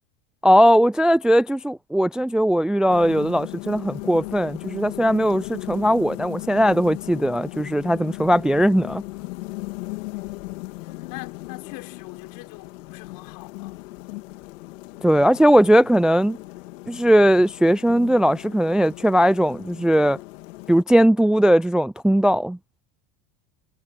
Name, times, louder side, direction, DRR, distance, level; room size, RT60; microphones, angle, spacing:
voice 1, 0.4-9.0 15.0-16.4 16.9-20.2 20.7-22.6, equal, ahead, 0.4 m, -18 dB
sound 1, 2.9-20.8, left 22 dB, 85° left, 2.6 m, -37 dB
voice 2, 10.8-13.8 15.0-15.3, left 22 dB, 65° left, 6.1 m, -42 dB
supercardioid pair, 110°, 38 cm